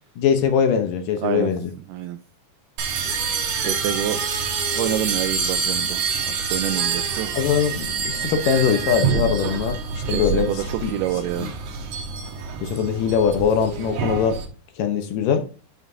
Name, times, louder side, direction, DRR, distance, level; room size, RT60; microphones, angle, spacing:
voice 1, 0.2-1.7 7.3-10.5 10.8-10.9 11.4-11.5 12.6-14.4 14.8-15.4, left 7 dB, 70° left, 7 dB, 2.3 m, -22 dB
voice 2, 1.2-1.5 1.9-2.2 3.6-4.2 4.8-7.3 10.1-11.5, right 12 dB, 85° right, 10 dB, 1.8 m, -27 dB
sound 1, 2.8-14.5, right 6 dB, 65° right, 2.3 m, -26 dB
Animal, 3.0-9.8, left 2 dB, ahead, 1.8 m, -39 dB
11.0 x 5.0 x 2.7 m, 0.35 s
omnidirectional pair, 4.4 m